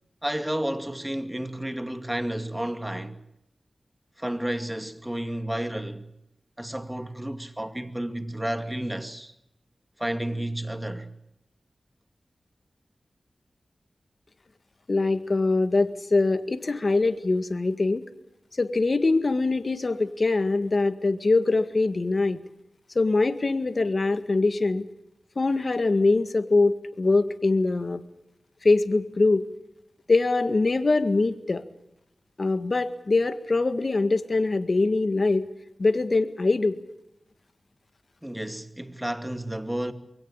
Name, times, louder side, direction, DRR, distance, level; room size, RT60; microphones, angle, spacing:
voice 1, 0.2-3.2 4.2-6.1 6.6-9.3 10.0-11.1 38.2-39.9, right 1 dB, 10° right, 2.3 m, -31 dB
voice 2, 14.9-18.1 18.6-22.4 23.0-24.9 25.4-28.0 28.6-29.4 30.1-31.6 32.4-35.4 35.8-36.8, left 3 dB, 55° left, 1.8 m, -23 dB
23.0 x 17.5 x 8.8 m
cardioid pair, 40°, 0 cm